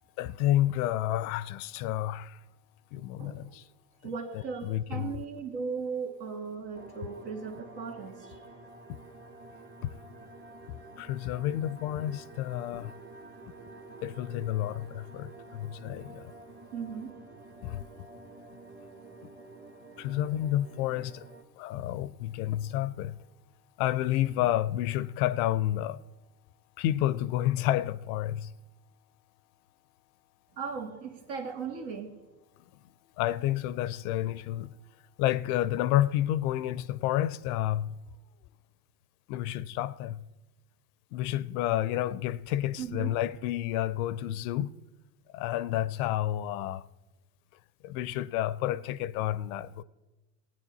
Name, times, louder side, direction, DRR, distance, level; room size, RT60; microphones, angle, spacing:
voice 1, 0.2-2.4 2.9-3.6 4.6-5.1 9.8-9.9 11.0-12.9 14.0-16.3 17.6-17.8 20.0-21.2 21.6-23.2 23.8-26.0 26.8-28.5 33.2-34.7 35.2-37.9 39.3-40.2 41.1-44.7 45.3-46.8 47.8-49.8, left 13 dB, 60° left, 0.6 m, -30 dB
voice 2, 3.2-3.5 4.0-8.4 16.7-17.2 30.6-32.2 42.8-43.1, right 5 dB, 65° right, 2.1 m, -37 dB
sound 1, 6.7-21.4, right 2 dB, 20° right, 1.3 m, -49 dB
15.5 x 9.3 x 4.0 m
hypercardioid pair, 90°, 49 cm